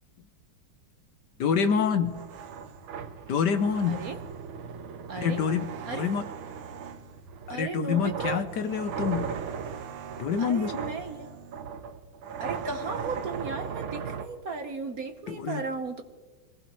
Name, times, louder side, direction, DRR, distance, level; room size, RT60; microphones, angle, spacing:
voice 1, 1.4-2.1 3.3-4.0 5.2-6.2 7.5-9.3 10.2-10.7 15.3-15.6, left 6 dB, 65° left, 8 dB, 1.3 m, -26 dB
sound 1, 2.0-14.3, right 6 dB, 85° right, 1.8 m, -38 dB
voice 2, 3.9-4.2 5.1-5.5 5.9-6.1 7.5-8.4 10.4-11.4 12.4-16.0, right 4 dB, 50° right, 5 dB, 1.4 m, -35 dB
25.0 x 18.0 x 3.1 m, 1.4 s
omnidirectional pair, 2.3 m